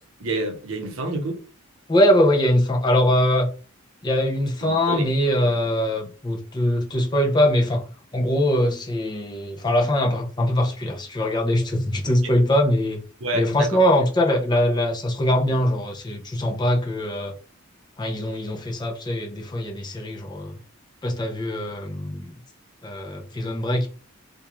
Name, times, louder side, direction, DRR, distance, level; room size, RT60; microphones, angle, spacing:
voice 1, 0.2-1.4 4.6-5.1 12.2-12.3 13.2-13.8, right 2 dB, 65° right, 0.6 m, -28 dB
voice 2, 1.9-3.5 4.0-7.8 8.1-13.0 13.3-17.3 18.0-20.6 21.0-22.3 22.8-23.9, left 1 dB, 20° left, 0.4 m, -22 dB
2.4 x 2.1 x 2.9 m
head